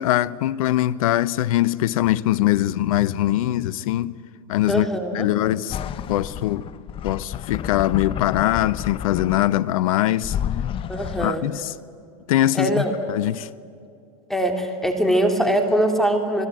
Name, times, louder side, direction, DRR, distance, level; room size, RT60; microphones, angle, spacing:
voice 1, 0.0-4.2 4.5-5.8 6.1-6.6 7.0-10.4 11.2-11.7 12.3-13.5, left 14 dB, 65° left, 0.9 m, -22 dB
voice 2, 4.7-5.3 10.9-11.4 12.5-12.9 14.3-16.5, right 1 dB, ahead, 2.9 m, -22 dB
sound 1, 5.7-9.7 10.2-11.3, left 10 dB, 30° left, 0.7 m, -30 dB
27.5 x 20.5 x 9.1 m
hypercardioid pair, 115°, 19 cm